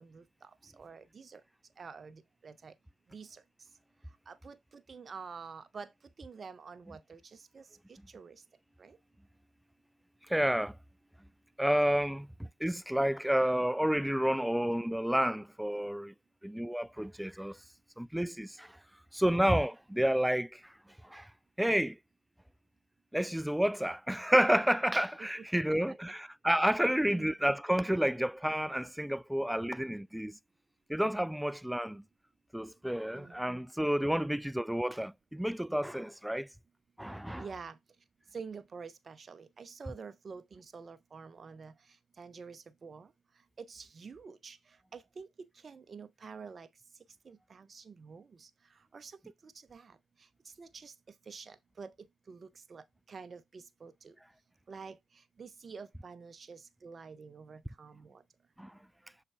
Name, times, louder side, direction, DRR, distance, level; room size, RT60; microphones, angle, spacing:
voice 1, 0.0-1.4 1.8-2.7 3.1-3.4 4.3-8.4 8.8-9.0 25.2-26.0 27.0-27.3 33.1-33.4 37.3-37.8 38.3-43.1 43.6-45.3 45.5-46.7 47.2-50.9 51.3-51.9 52.3-54.2 54.7-58.2, right 5 dB, 50° right, 0.9 m, -48 dB
voice 2, 10.3-10.7 11.6-12.3 12.6-16.1 16.4-17.6 18.0-18.7 19.1-20.6 21.1-21.3 21.6-22.0 23.1-30.4 30.9-32.0 32.5-36.5 37.0-37.4 58.6-58.7, equal, 5° right, 0.3 m, -30 dB
6.6 x 4.8 x 3.3 m
supercardioid pair, 50°, 0 cm